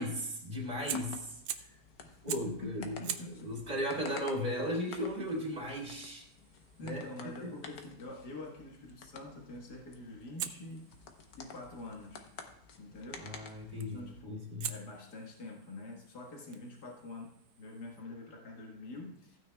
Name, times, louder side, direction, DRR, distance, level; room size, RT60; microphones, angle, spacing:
voice 1, 0.0-1.7 2.2-2.9 3.4-6.2 6.8-7.0 7.4-7.5 13.2-14.7, equal, 30° right, -3 dB, 2.5 m, -36 dB
sound 1, 0.6-14.2, left 5 dB, 70° left, 1.4 m, -52 dB
Fire, 0.9-1.8 2.3-2.6 3.0-7.9 10.4-12.5 13.8-14.1 14.6-18.0, right 10 dB, 85° right, 1.2 m, -46 dB
voice 2, 2.0-3.6 6.8-10.9 11.3-12.3 12.8-13.4 13.7-14.4 14.7-19.4, left 2 dB, 90° left, -1 dB, 2.1 m, -46 dB
15.5 x 9.2 x 2.3 m, 0.72 s
omnidirectional pair, 1.7 m